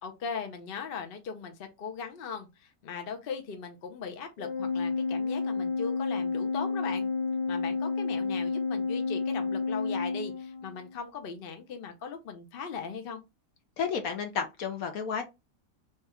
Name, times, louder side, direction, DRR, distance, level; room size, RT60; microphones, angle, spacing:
voice 1, 0.0-7.1 7.5-13.2, left 5 dB, 50° left, 0.7 m, -39 dB
Organ, 4.4-10.9, left 4 dB, 85° left, 1.3 m, -30 dB
voice 2, 13.8-15.2, left 6 dB, 65° left, 1.0 m, -31 dB
3.4 x 2.4 x 4.2 m
omnidirectional pair, 1.8 m